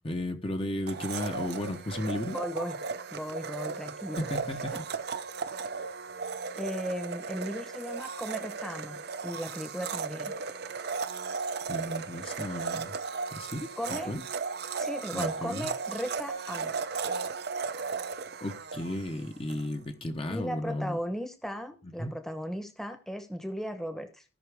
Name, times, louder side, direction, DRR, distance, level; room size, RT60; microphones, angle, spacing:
voice 1, 0.0-2.4 4.2-4.7 11.7-13.0 13.3-14.2 15.1-15.7 18.4-21.0 22.0-22.1, left 1 dB, 25° left, 0.9 m, -34 dB
Domestic sounds home sounds, 0.9-19.7, right 5 dB, 55° right, 0.6 m, -36 dB
voice 2, 2.3-2.8 3.1-4.3 4.7-4.8 6.6-10.3 13.8-14.1 14.8-16.8 20.3-24.2, equal, ahead, 1.0 m, -36 dB
16.5 x 5.7 x 3.5 m
head